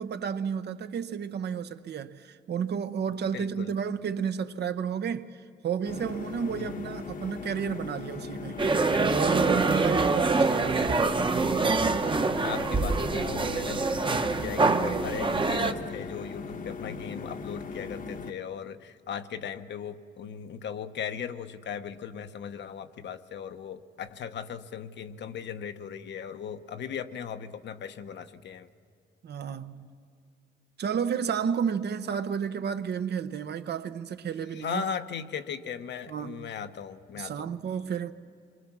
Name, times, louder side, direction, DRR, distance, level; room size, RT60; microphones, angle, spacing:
voice 1, 0.0-8.6 9.1-11.2 29.2-29.9 30.8-34.8 36.1-36.5 37.1-38.1, right 7 dB, 55° right, 0.9 m, -32 dB
voice 2, 3.3-3.8 6.5-6.8 10.4-10.5 11.7-12.0 12.4-28.7 34.5-37.6, left 7 dB, 60° left, 1.0 m, -38 dB
sound 1, 5.8-18.3, left 4 dB, 40° left, 1.1 m, -39 dB
sound 2, 8.6-15.7, right 3 dB, 25° right, 1.0 m, -25 dB
26.0 x 23.0 x 6.1 m
cardioid pair, 90°, 20 cm